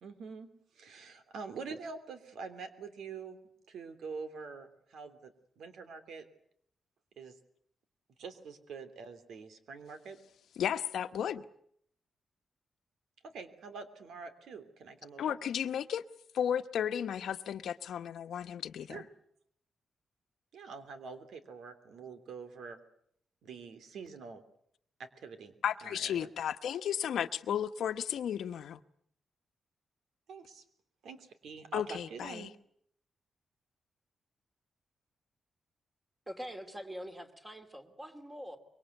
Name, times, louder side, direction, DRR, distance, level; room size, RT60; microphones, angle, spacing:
voice 1, 0.0-3.4 3.7-6.2 7.2-7.3 8.2-10.2 13.2-15.4 18.9-19.1 20.5-22.8 23.4-24.4 25.0-25.5 25.8-26.3 30.3-30.6 31.0-32.5, right 5 dB, 90° right, 3.1 m, -46 dB
voice 2, 10.6-11.4 15.2-16.0 16.3-19.0 25.6-28.8 31.7-32.5, left 9 dB, 85° left, 1.1 m, -34 dB
voice 3, 36.3-38.6, equal, 10° right, 2.6 m, -44 dB
25.0 x 23.5 x 8.2 m
wide cardioid pair, 170°, 0 cm